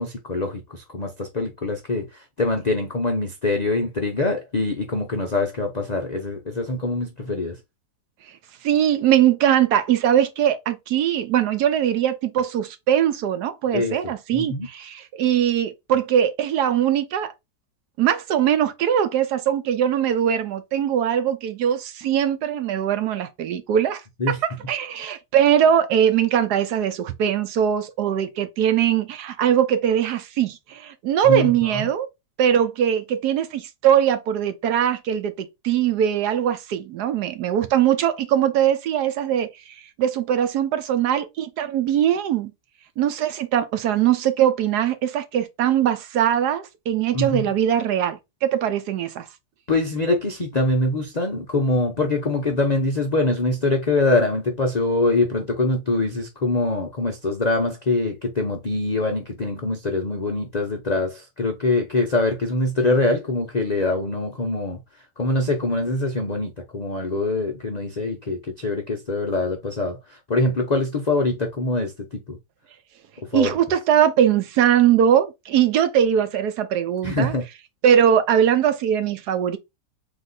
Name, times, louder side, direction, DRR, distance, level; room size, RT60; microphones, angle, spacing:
voice 1, 0.0-7.6 13.7-14.0 14.3-14.7 24.2-24.4 31.2-31.9 47.1-47.5 49.7-64.8 65.2-72.4 73.3-73.6 77.0-77.4, left 2 dB, 60° left, 0.4 m, -24 dB
voice 2, 8.6-17.3 18.0-24.0 24.3-24.4 24.7-32.1 32.4-39.5 40.0-42.5 43.0-49.2 73.3-77.3 77.8-79.6, right 9 dB, 75° right, 1.2 m, -21 dB
4.0 x 2.9 x 3.9 m
omnidirectional pair, 1.8 m